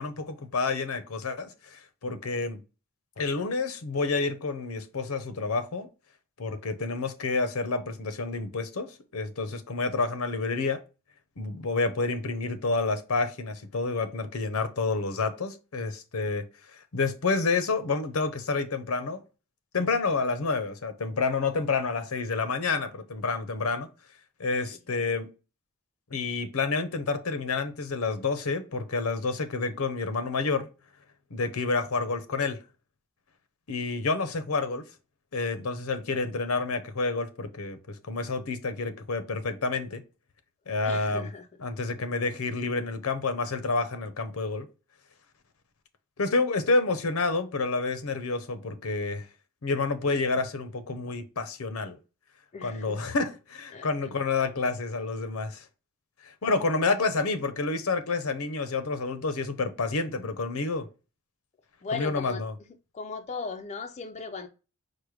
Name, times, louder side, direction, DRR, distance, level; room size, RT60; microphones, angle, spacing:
voice 1, 0.0-2.6 3.2-5.9 6.4-10.8 11.4-16.4 16.9-19.2 19.7-23.9 24.4-25.3 26.1-30.7 31.3-32.6 33.7-34.8 35.3-40.0 40.7-41.3 41.6-44.7 46.2-49.3 49.6-52.0 52.6-55.7 56.2-60.9 61.9-62.5, left 3 dB, 80° left, 0.7 m, -29 dB
voice 2, 40.8-41.5 52.5-53.0 53.7-53.9 61.8-62.4 62.9-64.5, left 4 dB, 30° left, 0.4 m, -37 dB
4.8 x 2.1 x 4.7 m
head